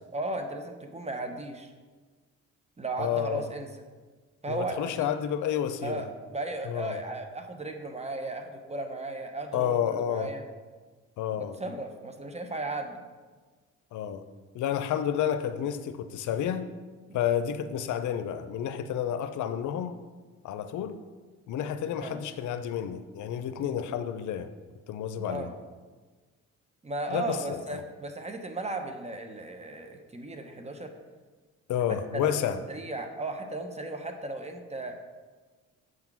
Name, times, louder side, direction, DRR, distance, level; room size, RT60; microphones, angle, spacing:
voice 1, 0.1-1.7 2.8-3.7 4.4-5.1 5.8-10.4 11.4-13.0 17.1-17.2 22.0-22.2 23.6-23.8 25.2-25.5 26.8-30.9 32.1-32.4 32.7-34.9, right 2 dB, 20° right, 5 dB, 0.8 m, -35 dB
voice 2, 3.0-3.5 4.5-6.1 6.6-7.0 9.5-10.3 11.2-11.6 13.9-14.2 14.5-16.7 17.1-20.0 20.4-21.0 21.5-24.5 24.9-25.5 27.1-27.6 31.7-32.6, left 9 dB, 75° left, 10 dB, 0.6 m, -30 dB
7.8 x 3.8 x 6.0 m, 1.4 s
cardioid pair, 90°, 30 cm